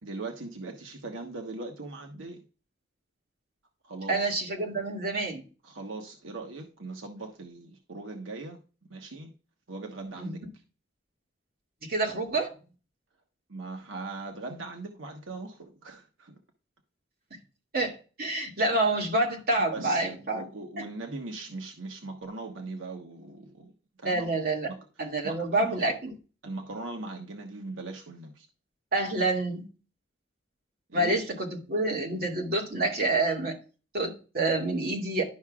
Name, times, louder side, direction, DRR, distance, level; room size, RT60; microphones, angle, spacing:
voice 1, 0.0-2.4 3.8-4.3 5.6-8.6 8.9-9.3 9.7-10.4 13.5-16.4 19.6-23.7 24.0-24.3 24.7-24.8 25.2-25.9 26.4-28.5 30.9-31.2 35.2-35.3, right 3 dB, 90° right, 1.2 m, -40 dB
voice 2, 4.1-5.4 10.2-10.4 11.8-12.5 17.7-20.5 24.0-24.7 25.0-26.1 28.9-29.6 30.9-33.6 33.9-35.2, right 2 dB, 50° right, 2.3 m, -28 dB
11.5 x 5.8 x 2.4 m
head